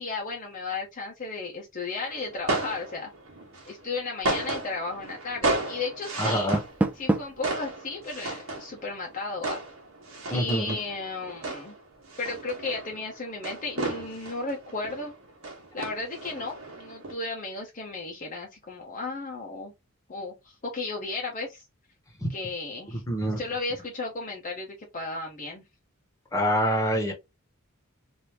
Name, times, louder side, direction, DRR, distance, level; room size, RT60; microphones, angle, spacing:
voice 1, 0.0-3.1 3.7-6.5 6.9-9.6 10.3-11.7 12.2-15.1 15.7-19.7 20.1-21.6 22.3-23.0 23.4-25.6, left 3 dB, 40° left, 0.7 m, -34 dB
sound 1, 2.1-17.1, right 2 dB, 70° right, 1.3 m, -34 dB
voice 2, 6.2-6.6 10.3-10.8 22.2-22.3 22.9-23.4 26.3-27.1, equal, 15° left, 1.1 m, -26 dB
Door, 6.3-7.5, right 2 dB, 5° right, 0.4 m, -28 dB
3.3 x 2.6 x 2.9 m
head